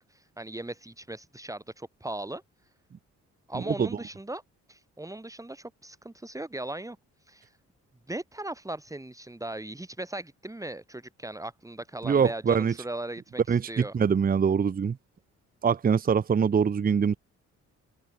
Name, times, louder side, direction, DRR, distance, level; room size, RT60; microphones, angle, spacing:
voice 1, 0.1-2.4 3.5-4.4 4.7-7.0 7.3-7.5 8.1-13.9, right 1 dB, 10° right, 4.5 m, -38 dB
voice 2, 12.0-12.7 13.5-15.0 15.6-17.2, right 6 dB, 30° right, 0.8 m, -23 dB
cardioid pair, 90°, 30 cm